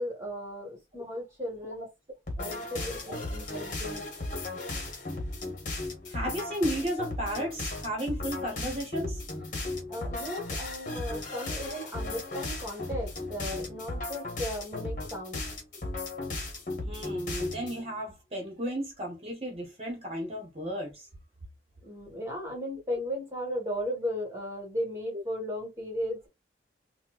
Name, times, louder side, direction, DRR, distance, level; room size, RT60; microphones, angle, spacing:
voice 1, 0.0-1.9 2.4-4.0 9.9-15.4 21.8-26.3, equal, 15° right, 1.4 m, -36 dB
sound 1, 2.3-17.8, left 2 dB, 45° left, 1.1 m, -36 dB
voice 2, 6.1-9.5 16.8-21.1 25.1-25.2, equal, 35° right, 1.0 m, -34 dB
4.2 x 2.1 x 2.4 m
head